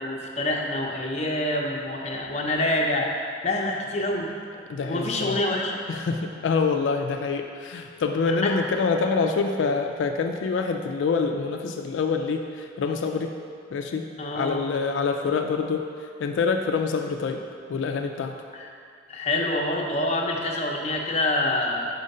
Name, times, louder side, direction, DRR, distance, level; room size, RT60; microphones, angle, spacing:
voice 1, 0.0-3.1 3.4-4.3 4.8-5.8 8.3-8.5 14.2-14.6 18.5-18.7 19.1-21.9, left 1 dB, 35° left, -1 dB, 0.7 m, -26 dB
voice 2, 4.7-5.4 5.9-13.3 13.7-14.1 14.3-17.4 17.7-18.3, left 4 dB, 85° left, 4 dB, 0.3 m, -26 dB
5.0 x 4.5 x 5.3 m, 2.3 s
head